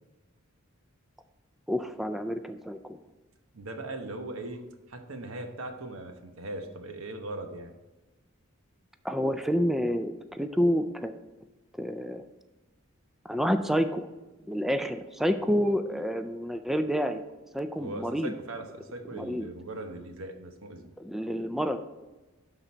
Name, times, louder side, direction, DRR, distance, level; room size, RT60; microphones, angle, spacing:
voice 1, 1.7-3.0 9.0-11.1 11.8-12.2 13.2-14.1 14.5-17.2 17.5-18.3 19.1-19.5 21.0-21.8, equal, ahead, 8 dB, 0.3 m, -28 dB
voice 2, 3.5-7.7 17.8-20.9, right 2 dB, 80° right, 5 dB, 1.0 m, -39 dB
12.0 x 3.9 x 4.3 m, 1.1 s
head